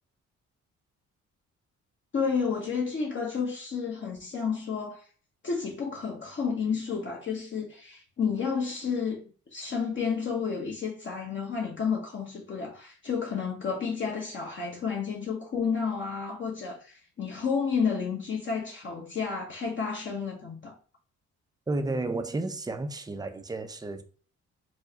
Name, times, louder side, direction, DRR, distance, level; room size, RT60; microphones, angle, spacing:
voice 1, 2.1-5.0 5.4-9.2 9.5-20.8, left 6 dB, 40° left, 0.8 m, -31 dB
voice 2, 21.7-24.0, right 2 dB, 15° right, 0.5 m, -32 dB
4.5 x 2.1 x 2.7 m
cardioid pair, 90°, 30 cm